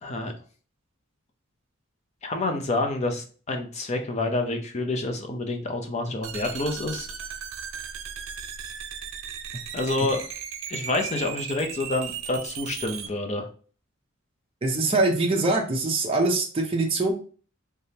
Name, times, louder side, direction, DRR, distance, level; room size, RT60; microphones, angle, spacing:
voice 1, 0.0-0.3 2.2-7.1 9.7-10.2 10.7-13.5, left 2 dB, 30° left, 4 dB, 0.6 m, -28 dB
sound 1, 6.2-13.1, right 7 dB, 70° right, 0.5 m, -36 dB
voice 2, 14.6-17.1, right 2 dB, 25° right, 0 dB, 0.6 m, -23 dB
3.4 x 3.4 x 2.7 m, 0.40 s
head